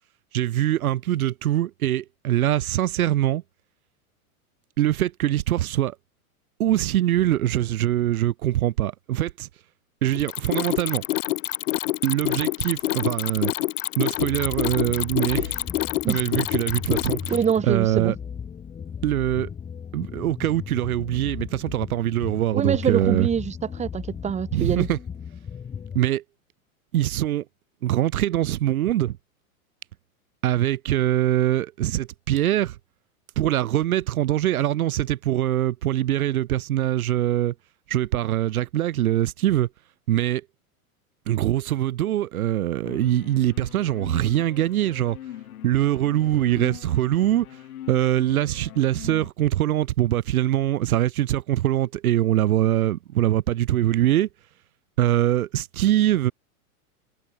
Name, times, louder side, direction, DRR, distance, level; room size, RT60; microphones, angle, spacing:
voice 1, 0.3-3.4 4.8-6.0 6.6-9.5 10.0-11.0 12.0-13.5 14.0-15.6 16.1-17.4 17.6-18.2 19.0-19.5 19.9-23.3 24.5-25.0 26.0-26.2 26.9-27.5 27.8-29.2 30.4-32.8 33.4-37.5 37.9-39.7 40.1-40.5 41.3-45.2 45.6-47.5 47.9-54.3 55.0-56.3, right 13 dB, 75° right, 2.0 m, -23 dB
Mechanisms, 10.1-17.6, left 17 dB, 60° left, 4.0 m, -27 dB
sound 1, 14.2-26.0, left 7 dB, 15° left, 2.0 m, -36 dB
voice 2, 17.3-18.1 22.5-24.9, right 7 dB, 15° right, 3.2 m, -25 dB
sound 2, 42.8-49.3, left 12 dB, 75° left, 6.6 m, -41 dB
supercardioid pair, 145°, 44 cm